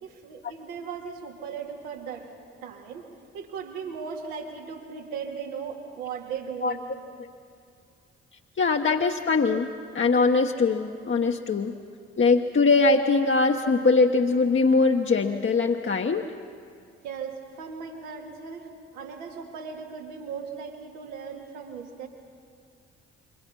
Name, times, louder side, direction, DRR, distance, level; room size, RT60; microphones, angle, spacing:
voice 1, 0.0-3.1 3.3-6.9 17.0-22.1, right 6 dB, 80° right, 1 dB, 2.2 m, -37 dB
voice 2, 8.6-9.7 9.9-11.7 12.2-16.2, left 4 dB, 35° left, 2 dB, 1.2 m, -22 dB
27.5 x 23.0 x 5.5 m, 2.3 s
hypercardioid pair, 45°, 32 cm